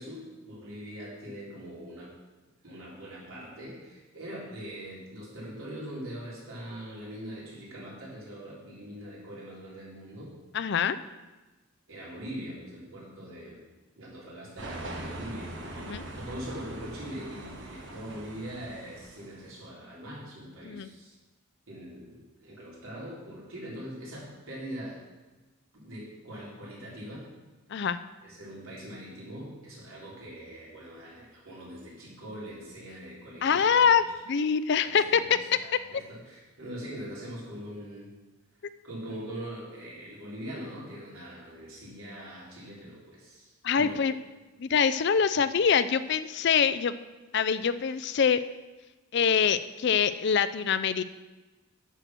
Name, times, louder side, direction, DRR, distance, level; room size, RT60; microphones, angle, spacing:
voice 1, 0.0-2.1 2.6-10.3 11.9-13.6 14.0-21.1 21.7-25.0 25.7-27.3 28.2-34.0 34.8-38.1 38.8-44.1 45.3-45.4, equal, 80° right, -6 dB, 3.9 m, -42 dB
voice 2, 10.5-11.0 15.8-16.0 20.6-20.9 27.7-28.0 33.4-35.2 43.6-44.1 44.6-46.9 47.3-48.4 49.1-51.0, left 6 dB, 55° left, 13 dB, 0.4 m, -24 dB
sound 1, 14.6-19.5, right 1 dB, 60° right, 1.3 m, -42 dB
9.1 x 6.6 x 6.1 m, 1.2 s
head